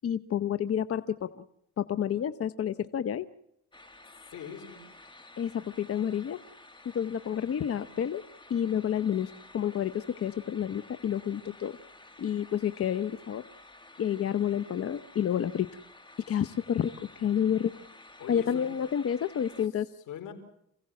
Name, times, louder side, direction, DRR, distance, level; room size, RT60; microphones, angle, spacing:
voice 1, 0.0-1.4 1.8-3.3 5.4-6.4 6.9-8.2 8.5-11.8 12.2-13.4 14.0-15.7 16.3-17.7 18.3-19.9, left 9 dB, 50° left, 12 dB, 0.8 m, -29 dB
sound 1, 3.7-19.7, left 2 dB, 15° left, 2.0 m, -53 dB
voice 2, 4.3-4.8 18.2-18.7 20.0-20.3, left 8 dB, 85° left, 7 dB, 4.5 m, -42 dB
28.5 x 16.5 x 7.6 m, 0.74 s
cardioid pair, 90°, 30 cm